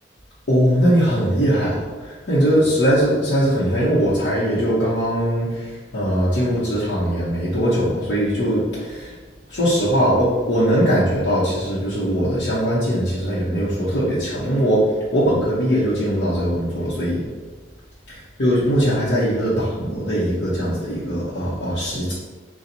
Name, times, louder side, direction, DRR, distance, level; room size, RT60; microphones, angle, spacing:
voice 1, 0.5-9.1 9.5-17.2 18.4-22.1, equal, 80° left, -10 dB, 0.9 m, -20 dB
4.4 x 2.3 x 3.9 m, 1.3 s
head